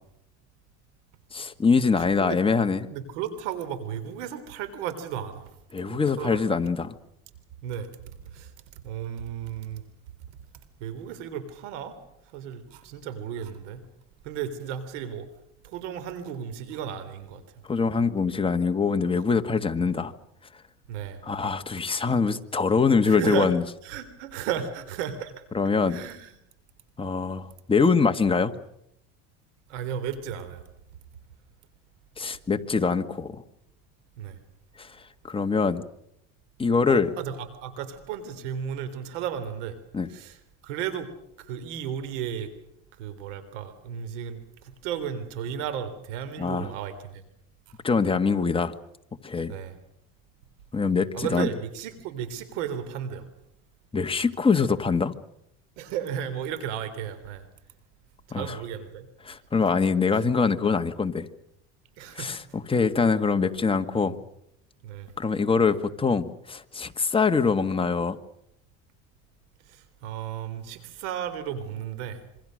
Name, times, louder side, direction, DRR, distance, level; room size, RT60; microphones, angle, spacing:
voice 1, 1.3-2.9 5.7-6.9 17.7-20.1 21.2-23.6 25.5-26.0 27.0-28.5 32.2-33.4 34.8-35.0 35.2-35.9 36.6-37.1 39.9-40.1 46.4-46.7 47.8-48.7 49.2-49.5 50.7-51.5 53.9-55.1 58.3-58.6 59.2-61.3 62.1-64.2 65.2-68.2, left 5 dB, 15° left, 7 dB, 1.6 m, -24 dB
voice 2, 2.0-2.4 2.9-5.5 5.9-6.6 7.6-9.8 10.8-12.0 12.3-13.8 14.2-15.3 15.6-17.4 19.8-19.9 20.9-21.2 23.0-23.5 23.8-25.3 25.9-26.3 29.7-30.6 34.2-34.4 36.9-39.8 40.1-40.4 40.6-41.1 41.4-42.5 43.0-47.2 49.5-49.8 51.1-53.3 55.8-57.5 58.3-59.1 62.0-62.3 64.1-64.2 64.8-65.1 69.7-72.2, right 9 dB, 85° right, 12 dB, 3.5 m, -34 dB
27.0 x 24.5 x 6.5 m, 0.77 s
supercardioid pair, 120°, 35 cm